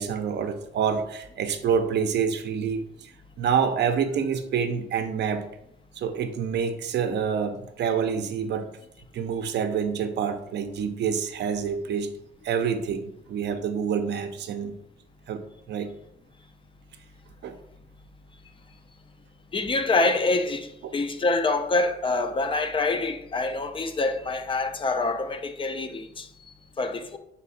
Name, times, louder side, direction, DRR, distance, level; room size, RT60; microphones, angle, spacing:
voice 1, 0.0-3.1 3.4-5.5 6.0-8.7 9.1-12.1 12.4-14.7 15.3-15.4 15.7-15.9 17.4-17.5, right 7 dB, 60° right, 0.5 m, -27 dB
voice 2, 19.5-26.3 26.8-27.2, left 3 dB, 25° left, 0.4 m, -26 dB
3.9 x 2.4 x 4.0 m
cardioid pair, 90°, 20 cm